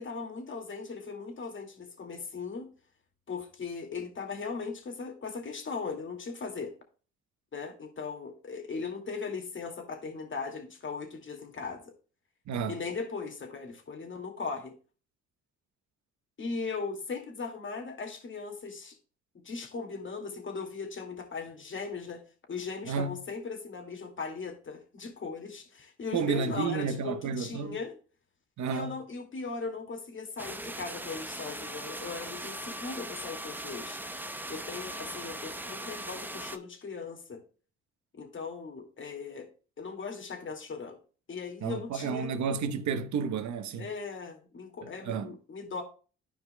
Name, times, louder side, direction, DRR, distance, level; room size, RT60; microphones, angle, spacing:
voice 1, 0.0-2.7 3.3-6.7 7.5-11.9 12.7-14.8 16.4-19.0 19.3-28.0 28.7-34.0 34.5-37.4 38.1-39.5 39.8-41.0 41.3-42.3 43.8-45.8, left 4 dB, 40° left, 2.2 m, -38 dB
voice 2, 12.5-12.8 22.8-23.2 26.1-27.8 28.6-29.0 41.6-43.8 44.8-45.3, right 6 dB, 70° right, 1.1 m, -31 dB
sound 1, 30.4-36.6, right 1 dB, 5° right, 0.8 m, -39 dB
13.0 x 4.9 x 2.2 m
cardioid pair, 90°, 30 cm